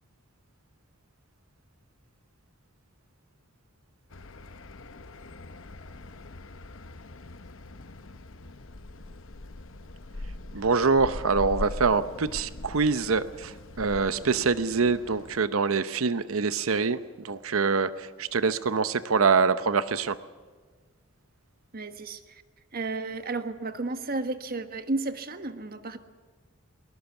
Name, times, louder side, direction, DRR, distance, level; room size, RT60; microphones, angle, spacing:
sound 1, 4.1-15.4, left 2 dB, 70° left, 1.0 m, -42 dB
voice 1, 10.5-17.0 17.2-20.2, right 4 dB, 85° right, 13 dB, 0.8 m, -25 dB
voice 2, 21.7-22.4 22.7-26.0, right 3 dB, 45° right, 9 dB, 1.3 m, -33 dB
22.0 x 20.0 x 7.1 m, 1.5 s
head